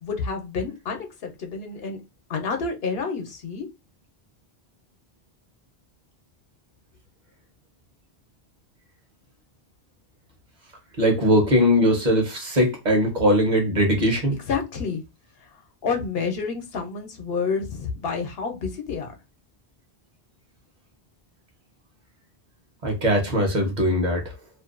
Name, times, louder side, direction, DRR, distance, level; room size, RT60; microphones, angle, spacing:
voice 1, 0.0-2.0 2.3-3.7 14.5-15.0 15.8-19.1, left 5 dB, 70° left, 0.9 m, -29 dB
voice 2, 11.0-14.4 22.8-24.2, equal, 50° right, 0.9 m, -20 dB
2.6 x 2.2 x 2.4 m
omnidirectional pair, 1.0 m